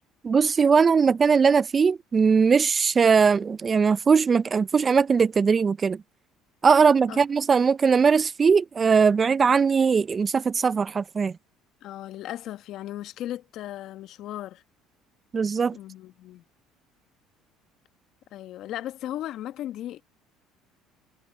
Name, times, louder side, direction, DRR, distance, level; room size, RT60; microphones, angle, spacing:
voice 1, 0.2-6.0 6.6-11.3 15.3-15.8, right 5 dB, 35° right, 0.5 m, -20 dB
voice 2, 11.8-14.6 15.7-16.4 18.3-20.0, left 13 dB, 65° left, 1.5 m, -36 dB
hypercardioid pair, 75°, 0 cm